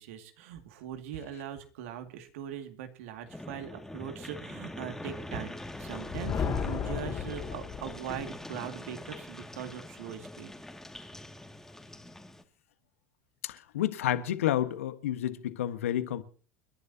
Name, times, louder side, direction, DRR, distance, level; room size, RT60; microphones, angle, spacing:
voice 1, 0.0-10.5, right 9 dB, 80° right, 2.3 m, -41 dB
sound 1, 3.3-12.4, left 1 dB, 5° left, 2.3 m, -44 dB
Thunder, 5.8-8.3, left 6 dB, 40° left, 3.7 m, -34 dB
voice 2, 13.4-16.2, left 12 dB, 90° left, 1.4 m, -30 dB
29.5 x 11.5 x 2.9 m
hypercardioid pair, 95°, 7 cm